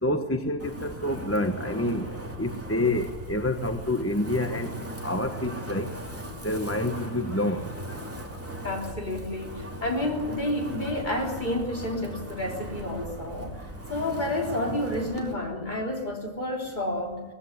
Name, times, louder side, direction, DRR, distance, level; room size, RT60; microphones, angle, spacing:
voice 1, 0.0-2.1 2.4-4.7 5.0-5.9 6.4-7.7, left 1 dB, 10° left, 6 dB, 0.9 m, -27 dB
Wind, 0.6-15.3, right 1 dB, 10° right, 2.8 m, -38 dB
voice 2, 8.6-13.6 13.9-17.2, left 1 dB, 30° left, 0 dB, 3.6 m, -30 dB
20.0 x 15.5 x 9.8 m, 1.3 s
omnidirectional pair, 1.6 m